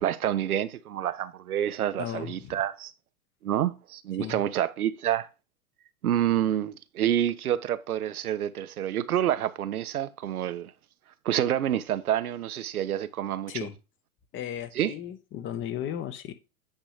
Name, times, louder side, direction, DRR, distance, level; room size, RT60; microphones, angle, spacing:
voice 1, 0.0-2.9 3.4-5.3 6.0-10.7 11.2-13.5 14.8-14.9, right 11 dB, 90° right, 0.7 m, -28 dB
voice 2, 2.0-2.6 4.2-4.4 13.5-13.8 14.3-16.3, left 10 dB, 30° left, 0.9 m, -35 dB
8.9 x 3.0 x 5.0 m
hypercardioid pair, 110°, 43 cm